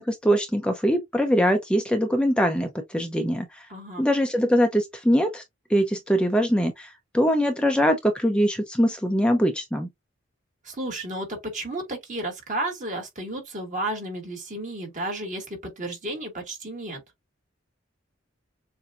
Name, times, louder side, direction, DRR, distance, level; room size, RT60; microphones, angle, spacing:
voice 1, 0.0-3.7 4.0-5.4 5.7-9.9, equal, 5° left, 0.6 m, -22 dB
voice 2, 3.7-4.1 10.6-17.0, right 1 dB, 40° right, 2.4 m, -32 dB
7.0 x 2.7 x 2.4 m
head